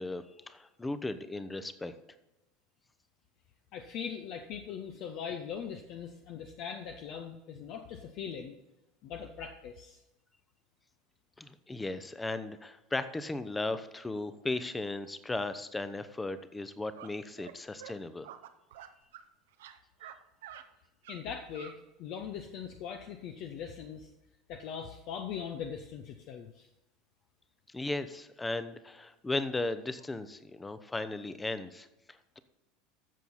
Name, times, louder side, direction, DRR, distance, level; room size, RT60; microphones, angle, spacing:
voice 1, 0.0-1.9 11.4-18.3 27.7-32.4, left 2 dB, 10° left, 13 dB, 0.8 m, -36 dB
voice 2, 3.7-8.6 9.0-10.0 21.1-24.1 24.5-26.7, left 7 dB, 45° left, 6 dB, 0.8 m, -41 dB
sound 1, 16.9-17.1 17.4-17.5 17.8-17.9 18.2-19.3 19.5-20.2 20.4-20.6 21.0-21.2 21.5-21.7, right 11 dB, 60° right, 0.7 m, -48 dB
14.0 x 7.0 x 4.1 m, 0.95 s
figure-of-eight pair, 75°, 0 cm